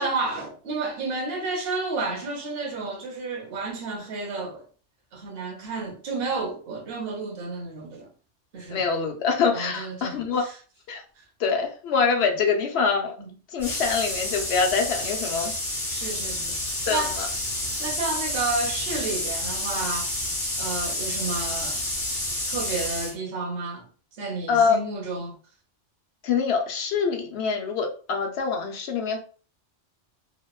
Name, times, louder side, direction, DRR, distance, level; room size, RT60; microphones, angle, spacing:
voice 1, 0.0-4.6 5.1-8.1 8.5-8.8 9.5-10.5 11.2-11.3 15.9-16.6 16.9-17.1 17.8-20.1 20.6-21.8 22.5-23.8 24.2-25.4, right 3 dB, 60° right, 0.9 m, -31 dB
voice 2, 8.7-10.4 10.9-11.0 11.4-13.1 13.5-15.5 16.9-17.3 24.5-24.8 26.2-29.2, left 5 dB, 70° left, 0.8 m, -24 dB
sound 1, 13.6-23.1, left 1 dB, 20° left, 1.1 m, -29 dB
2.9 x 2.1 x 2.3 m
omnidirectional pair, 1.2 m